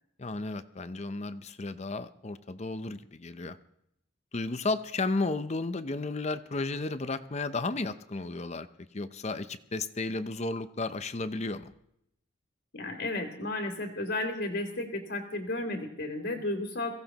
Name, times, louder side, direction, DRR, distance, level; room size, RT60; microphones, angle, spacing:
voice 1, 0.2-3.6 4.3-8.7 8.9-11.7, left 3 dB, 35° left, 12 dB, 0.6 m, -33 dB
voice 2, 12.7-16.9, left 2 dB, 70° left, -1 dB, 2.5 m, -33 dB
23.0 x 16.0 x 3.0 m, 0.79 s
head